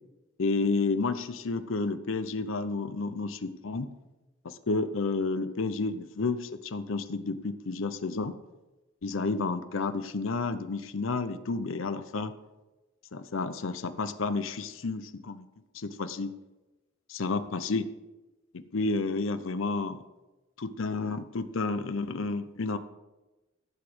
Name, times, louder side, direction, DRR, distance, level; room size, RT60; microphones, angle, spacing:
voice 1, 0.4-3.9 4.4-8.4 9.0-12.3 13.1-15.4 15.7-16.3 17.1-17.9 18.5-20.0 20.6-22.8, left 3 dB, 70° left, 10 dB, 0.7 m, -31 dB
14.5 x 4.9 x 7.9 m, 1.1 s
head